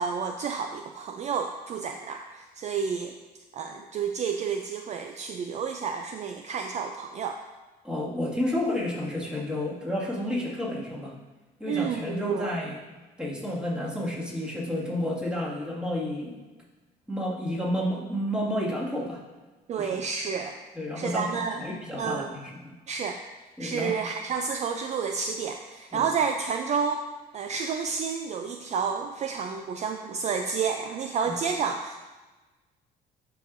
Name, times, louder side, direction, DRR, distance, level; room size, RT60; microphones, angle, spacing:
voice 1, 0.0-3.1 3.5-7.4 11.7-12.5 19.7-20.6 21.0-21.6 22.0-22.3 22.9-23.2 23.6-27.0 27.3-32.0, right 6 dB, 40° right, 5 dB, 0.4 m, -30 dB
voice 2, 7.8-11.2 11.6-12.8 13.2-16.4 17.1-19.2 19.8-20.0 20.7-22.7 23.6-24.0 25.9-26.0 31.3-31.4, left 1 dB, 5° right, -5 dB, 2.0 m, -31 dB
12.0 x 4.7 x 2.6 m, 1.2 s
cardioid pair, 110°, 17 cm